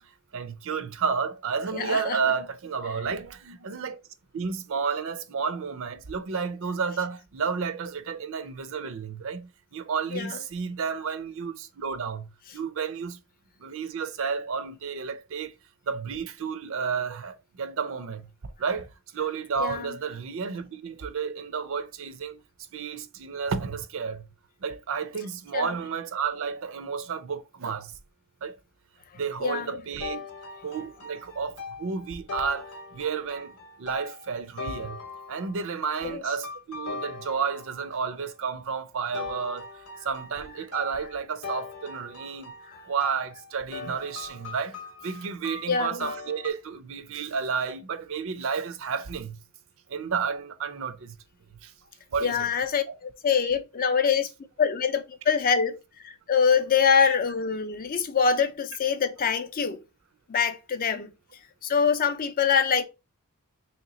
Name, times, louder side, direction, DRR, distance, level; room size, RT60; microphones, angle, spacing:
voice 1, 0.3-4.0 4.3-12.3 12.5-13.2 13.6-15.6 15.9-22.4 22.7-24.2 24.6-27.9 28.4-28.6 29.2-30.3 30.6-33.5 33.8-35.0 35.3-42.5 42.9-49.4 49.9-51.1 51.6-51.7 52.1-52.4 57.0-57.1, right 6 dB, 65° right, 0.5 m, -31 dB
voice 2, 1.7-2.2 10.1-10.4 19.6-19.9 25.5-25.7 29.4-29.8 36.0-36.2 42.7-42.8 45.7-46.0 52.2-54.3 54.6-59.8 60.3-61.1 61.6-62.8, left 6 dB, 40° left, 0.4 m, -25 dB
sound 1, 30.0-35.8 36.4-38.1 39.1-46.5, left 4 dB, 80° left, 0.8 m, -40 dB
3.0 x 2.9 x 3.9 m
head